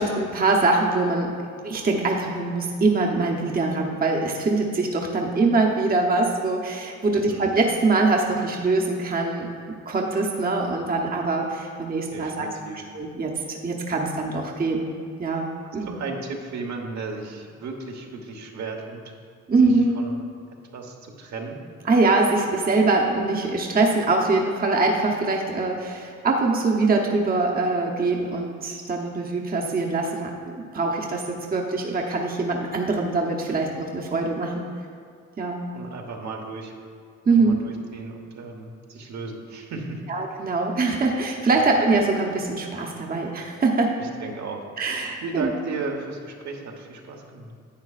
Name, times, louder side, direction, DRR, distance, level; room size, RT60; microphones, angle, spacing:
voice 1, 0.0-1.4 1.6-9.5 9.9-12.5 12.9-14.9 15.2-16.0 19.5-20.0 21.9-34.7 35.4-35.6 37.3-37.6 40.1-44.0 44.8-45.5, right 3 dB, 30° right, 0 dB, 0.9 m, -23 dB
voice 2, 7.2-7.6 12.1-12.8 15.6-19.1 20.0-20.2 20.7-21.6 35.7-36.7 37.2-40.0 41.6-41.7 44.0-47.5, right 3 dB, 65° right, 1 dB, 1.3 m, -35 dB
10.5 x 8.3 x 2.5 m, 2.2 s
cardioid pair, 90°, 30 cm